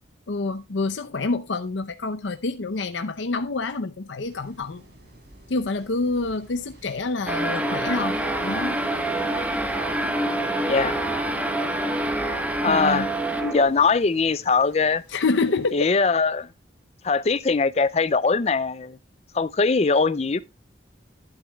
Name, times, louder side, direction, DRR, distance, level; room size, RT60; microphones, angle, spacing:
voice 1, 0.3-4.8 5.5-8.8 12.6-13.1 15.1-15.9, left 3 dB, 75° left, 0.7 m, -27 dB
sound 1, 4.2-16.0, right 1 dB, 65° right, 3.7 m, -50 dB
sound 2, 7.3-13.9, right 1 dB, 10° right, 1.1 m, -26 dB
voice 2, 10.7-11.0 12.6-13.1 13.4-15.0 15.7-16.5 17.0-19.0 19.3-20.4, left 4 dB, 35° left, 0.4 m, -21 dB
11.5 x 10.0 x 2.3 m
head